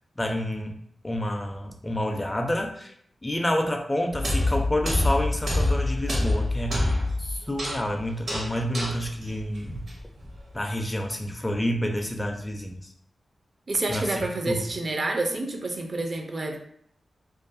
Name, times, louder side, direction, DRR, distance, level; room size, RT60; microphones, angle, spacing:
voice 1, 0.2-0.7 1.0-2.9 3.2-9.9 10.5-12.9 13.9-14.6, left 1 dB, 20° left, 3 dB, 0.4 m, -29 dB
sound 1, 4.1-10.4, left 1 dB, 70° right, 0.8 m, -27 dB
voice 2, 13.7-16.6, right 2 dB, 50° right, 3 dB, 0.4 m, -28 dB
2.3 x 2.3 x 2.5 m, 0.66 s
wide cardioid pair, 85°, 0 cm